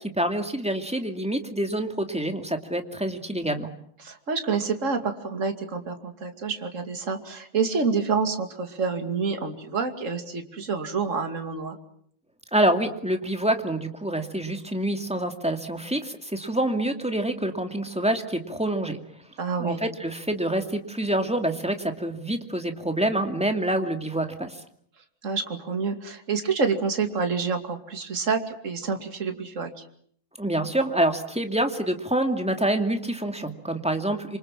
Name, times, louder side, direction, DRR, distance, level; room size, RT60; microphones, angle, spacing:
voice 1, 0.0-3.7 12.5-19.0 19.6-24.6 30.4-34.4, right 1 dB, 5° right, 5 dB, 2.2 m, -26 dB
voice 2, 4.0-11.8 19.4-19.8 25.2-29.8, right 5 dB, 35° right, 6 dB, 2.7 m, -28 dB
27.5 x 25.5 x 7.5 m, 0.64 s
omnidirectional pair, 2.4 m